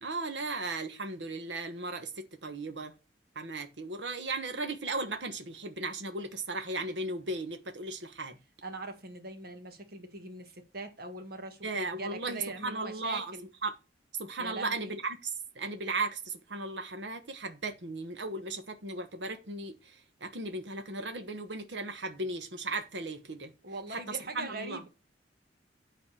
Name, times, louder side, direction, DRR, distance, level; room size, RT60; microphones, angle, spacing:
voice 1, 0.0-2.9 3.3-8.4 11.6-13.3 13.6-13.7 14.2-23.5 23.9-24.8, right 3 dB, 75° right, 1.3 m, -36 dB
voice 2, 8.6-13.5 14.4-15.0 23.6-24.9, right 2 dB, 55° right, 1.8 m, -42 dB
10.0 x 4.1 x 6.7 m
head